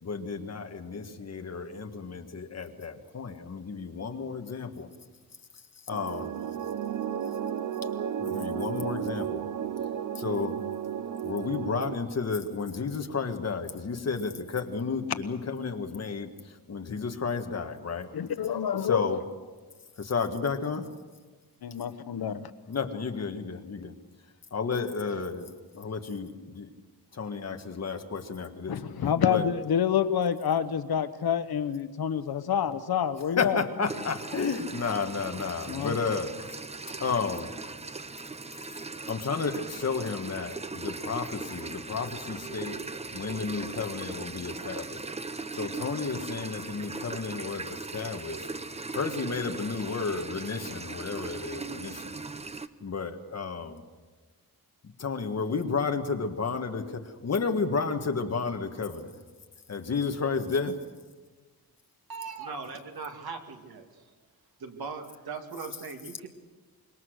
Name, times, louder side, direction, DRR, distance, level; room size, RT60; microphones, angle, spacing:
voice 1, 0.0-4.9 5.9-6.4 8.2-9.5 10.2-10.6 11.2-18.1 18.8-19.2 20.0-20.9 22.7-23.9 24.5-26.7 27.1-28.8 29.3-29.4 33.3-36.6 37.0-37.5 38.7-42.8 43.1-45.0 45.5-48.5 48.9-52.2 52.8-53.8 55.0-59.2 59.7-60.8, left 5 dB, 45° left, 5 dB, 1.7 m, -32 dB
sound 1, 5.9-12.0, right 9 dB, 55° right, 0.6 m, -33 dB
voice 2, 18.1-19.2 21.6-22.5 28.7-33.6 35.7-36.0, left 8 dB, 75° left, 11 dB, 1.2 m, -28 dB
sound 2, 33.9-52.7, right 3 dB, 15° right, 0.7 m, -39 dB
voice 3, 62.1-64.1 64.6-66.3, right 5 dB, 75° right, 4 dB, 2.4 m, -39 dB
25.5 x 22.5 x 6.5 m, 1.3 s
wide cardioid pair, 170°, 37 cm